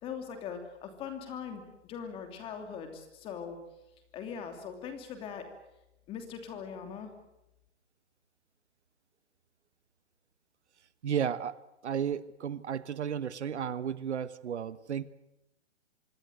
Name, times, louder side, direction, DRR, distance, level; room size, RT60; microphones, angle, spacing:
voice 1, 0.0-3.6 4.1-5.5 6.1-7.1, left 7 dB, 15° left, 6 dB, 3.0 m, -41 dB
voice 2, 11.0-11.6 11.8-15.1, right 8 dB, 70° right, 15 dB, 1.4 m, -33 dB
26.5 x 21.0 x 8.0 m, 0.89 s
hypercardioid pair, 165°, 35 cm